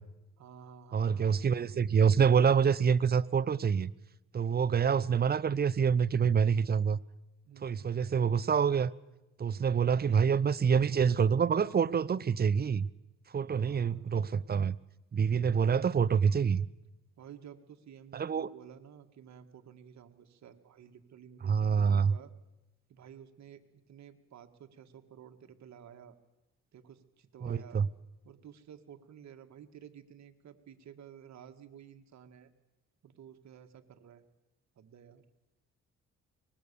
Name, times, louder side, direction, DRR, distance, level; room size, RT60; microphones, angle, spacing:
voice 1, 0.4-1.5 7.4-8.0 10.0-10.2 13.5-14.1 17.2-22.3 22.9-26.2 26.7-27.8 28.2-32.5 33.0-34.2 34.8-35.2, right 8 dB, 65° right, 2.0 m, -53 dB
voice 2, 0.9-3.9 4.3-7.0 7.6-8.9 9.4-12.9 13.3-14.8 15.1-16.7 18.1-18.5 21.4-22.1 27.4-27.9, right 6 dB, 30° right, 0.7 m, -26 dB
23.5 x 20.5 x 7.0 m
cardioid pair, 90°, 30 cm